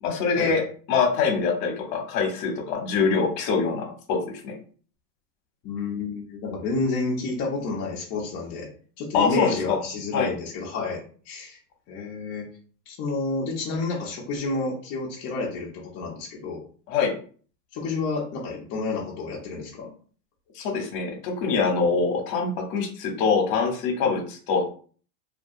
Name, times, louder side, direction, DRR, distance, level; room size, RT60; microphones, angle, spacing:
voice 1, 0.0-0.6 0.9-4.2 4.4-4.5 9.1-9.8 10.1-10.3 16.9-17.1 20.6-24.6, left 5 dB, 55° left, 2 dB, 0.9 m, -24 dB
voice 2, 5.6-8.7 9.0-11.6 11.9-12.5 12.9-16.6 17.7-19.9, left 3 dB, 30° left, -3 dB, 0.6 m, -30 dB
2.4 x 2.2 x 2.7 m, 0.42 s
supercardioid pair, 135°, 49 cm